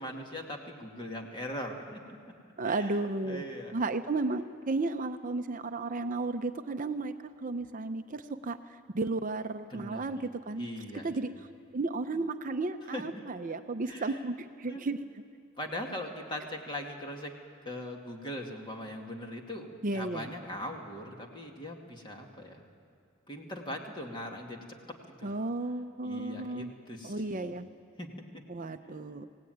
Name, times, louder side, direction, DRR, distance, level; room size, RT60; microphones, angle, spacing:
voice 1, 0.0-2.2 2.6-3.0 3.2-3.8 9.7-10.2 10.6-11.3 12.9-13.0 13.9-14.2 14.7-14.8 15.6-17.3 17.7-22.6 23.3-24.6 25.1-25.3 26.0-27.5 28.0-28.1 28.3-28.4, left 1 dB, 25° left, 1 dB, 2.3 m, -40 dB
voice 2, 2.6-3.4 3.7-10.7 11.0-11.3 11.7-15.0 19.8-20.3 25.2-26.7 27.0-27.7 28.5-29.3, right 3 dB, 40° right, 8 dB, 0.6 m, -33 dB
25.5 x 18.0 x 9.3 m, 2.3 s
head